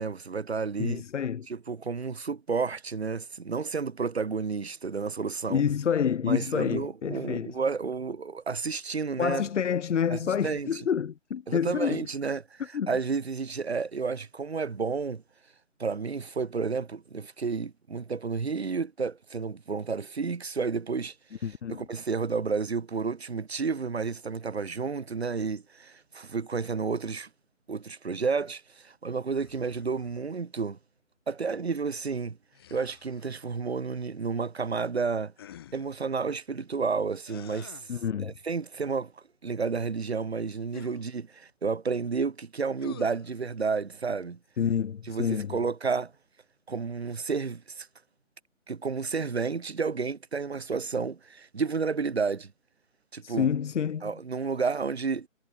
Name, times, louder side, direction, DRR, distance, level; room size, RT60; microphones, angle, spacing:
voice 1, 0.0-1.0 1.5-5.6 6.2-9.4 10.1-10.8 11.5-15.2 15.8-21.1 21.7-27.3 27.7-30.8 31.3-32.4 32.7-35.3 35.7-37.9 38.2-39.1 39.4-44.4 45.1-46.1 46.7-47.9 48.7-52.5 53.1-53.5 54.0-55.3, right 5 dB, 55° right, 1.2 m, -31 dB
voice 2, 0.8-1.5 5.5-7.6 9.2-12.1 12.7-12.9 21.4-21.8 37.9-38.3 44.6-45.6 53.2-54.1, left 8 dB, 65° left, 0.5 m, -28 dB
sound 1, 29.4-30.3 32.5-33.5 35.4-36.0 37.2-38.0 40.7-41.0 42.8-43.3, left 11 dB, 20° left, 2.9 m, -50 dB
figure-of-eight pair, 155°, 39 cm